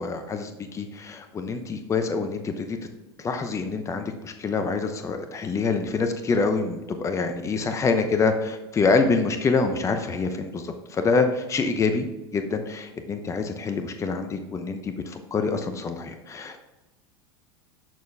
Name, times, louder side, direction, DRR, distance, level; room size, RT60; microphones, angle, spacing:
voice 1, 0.0-2.8 3.2-12.1 12.3-16.6, left 4 dB, 20° left, 7 dB, 0.9 m, -26 dB
12.0 x 4.5 x 3.5 m, 1.1 s
hypercardioid pair, 95°, 13 cm